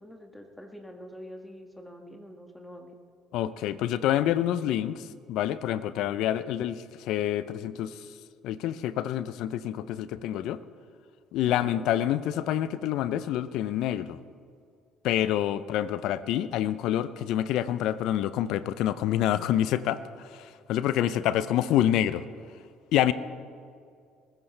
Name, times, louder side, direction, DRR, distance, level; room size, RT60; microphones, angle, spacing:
voice 1, 0.0-3.0 11.5-11.9 21.0-21.3, equal, 5° left, 4 dB, 1.7 m, -45 dB
voice 2, 3.3-8.1 8.4-10.6 11.3-14.2 15.0-22.3 22.9-23.1, left 12 dB, 70° left, 16 dB, 0.5 m, -27 dB
22.5 x 15.0 x 3.3 m, 2.3 s
hypercardioid pair, 60°, 0 cm